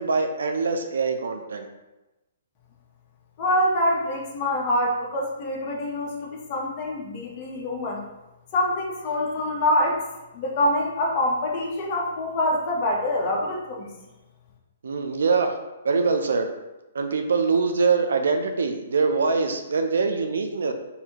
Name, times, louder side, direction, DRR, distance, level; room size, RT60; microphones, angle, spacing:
voice 1, 0.0-1.7 14.8-15.5 15.8-16.5 16.9-20.7, right 4 dB, 85° right, 6 dB, 0.4 m, -23 dB
voice 2, 3.4-8.0 8.5-10.0 10.3-13.9, left 1 dB, 30° left, -1 dB, 0.8 m, -25 dB
4.0 x 2.7 x 2.9 m, 1.0 s
hypercardioid pair, 165°, 0 cm